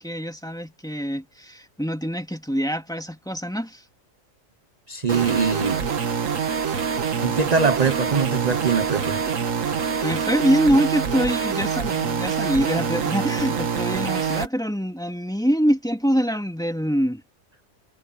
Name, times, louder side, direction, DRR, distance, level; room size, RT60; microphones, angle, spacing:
voice 1, 0.0-3.8 10.0-17.2, equal, 5° left, 2.2 m, -24 dB
voice 2, 4.9-5.8 7.2-9.3, right 5 dB, 35° right, 0.9 m, -22 dB
sound 1, 5.1-14.5, right 6 dB, 85° right, 1.8 m, -25 dB
omnidirectional pair, 1.3 m